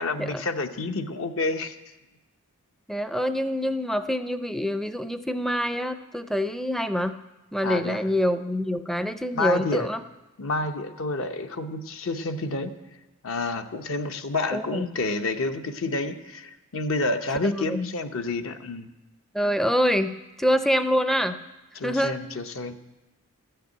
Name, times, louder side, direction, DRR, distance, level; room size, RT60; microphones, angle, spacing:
voice 1, 0.0-1.8 7.6-8.0 9.3-9.9 10.4-12.7 13.2-18.9 21.7-22.8, left 3 dB, 60° left, 8 dB, 0.8 m, -29 dB
voice 2, 2.9-7.1 7.5-10.0 14.5-14.9 17.6-17.9 19.3-21.4 21.8-22.2, equal, ahead, 10 dB, 0.4 m, -25 dB
13.0 x 6.8 x 9.1 m, 1.0 s
head